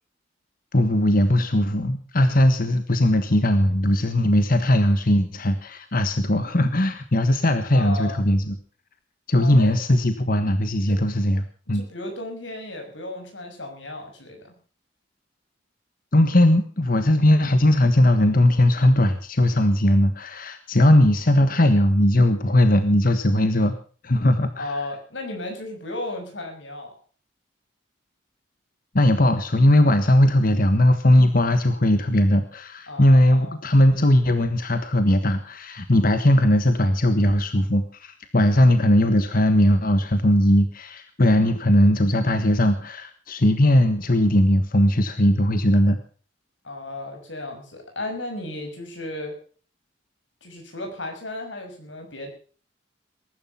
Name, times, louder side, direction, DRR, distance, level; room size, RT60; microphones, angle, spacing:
voice 1, 0.7-8.6 9.3-11.8 16.1-23.7 24.0-24.8 28.9-46.0, left 1 dB, 50° left, 9 dB, 1.4 m, -19 dB
voice 2, 7.7-8.2 9.4-9.7 10.9-11.0 11.7-14.5 24.6-26.9 32.9-33.6 46.6-49.3 50.4-52.3, left 2 dB, 80° left, 3 dB, 6.2 m, -34 dB
20.5 x 11.5 x 5.7 m, 0.42 s
head